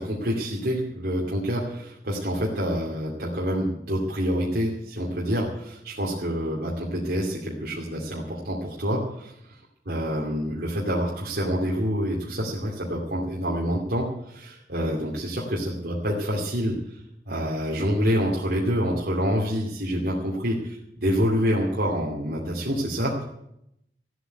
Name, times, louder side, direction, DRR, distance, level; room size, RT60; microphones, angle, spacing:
voice 1, 0.0-9.3 9.9-16.7 17.3-23.2, equal, 60° right, -4 dB, 2.6 m, -27 dB
15.0 x 8.2 x 9.3 m, 0.79 s
head